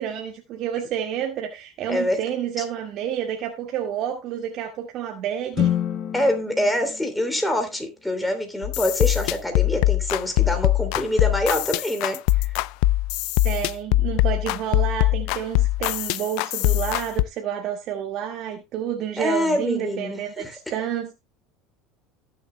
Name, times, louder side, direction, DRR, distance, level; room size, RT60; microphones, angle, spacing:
voice 1, 0.0-5.7 13.4-21.1, right 9 dB, 50° right, 1.8 m, -29 dB
voice 2, 1.9-2.2 6.1-12.2 19.2-20.6, left 1 dB, 5° left, 3.0 m, -25 dB
sound 1, 5.5-8.0, left 10 dB, 35° left, 1.3 m, -28 dB
sound 2, 8.6-17.2, left 17 dB, 65° left, 0.5 m, -22 dB
18.5 x 7.1 x 2.2 m
supercardioid pair, 135°, 0 cm